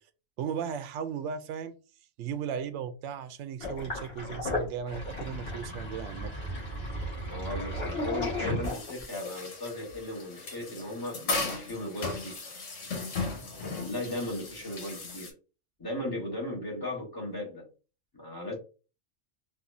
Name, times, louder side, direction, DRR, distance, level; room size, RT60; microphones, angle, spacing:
voice 1, 0.4-1.8 2.2-6.3, right 7 dB, 75° right, 0.9 m, -36 dB
Sink (filling or washing), 3.6-9.2, left 1 dB, 55° left, 1.8 m, -34 dB
voice 2, 7.3-12.4 13.6-15.3 15.8-17.7 18.1-18.6, left 1 dB, 20° left, 1.2 m, -37 dB
sound 1, 8.6-15.3, left 3 dB, 85° left, 1.5 m, -37 dB
4.2 x 2.6 x 2.5 m
omnidirectional pair, 1.3 m